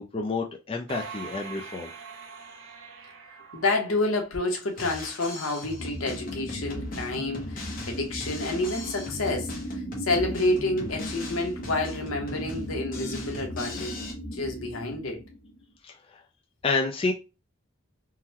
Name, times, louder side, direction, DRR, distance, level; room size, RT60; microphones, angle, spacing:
voice 1, 0.0-1.9 15.8-16.2 16.6-17.1, left 3 dB, 25° left, 0.4 m, -29 dB
sound 1, 0.9-4.6, right 5 dB, 65° right, 0.6 m, -43 dB
voice 2, 3.5-13.9 14.3-15.2, left 2 dB, 80° left, 1.0 m, -29 dB
Drum kit, 4.7-14.1, left 2 dB, 40° left, 0.8 m, -40 dB
sound 2, 5.8-15.6, equal, 60° left, 1.3 m, -38 dB
3.7 x 2.1 x 2.8 m
head